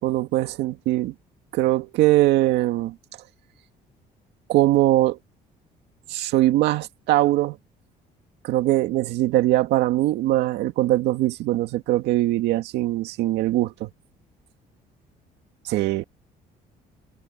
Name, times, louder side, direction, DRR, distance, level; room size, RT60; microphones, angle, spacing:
voice 1, 0.0-1.1 1.5-2.9 4.5-5.2 6.1-7.6 8.4-13.9 15.7-16.0, right 16 dB, 85° right, 2.0 m, -21 dB
cardioid pair, 110°, 17 cm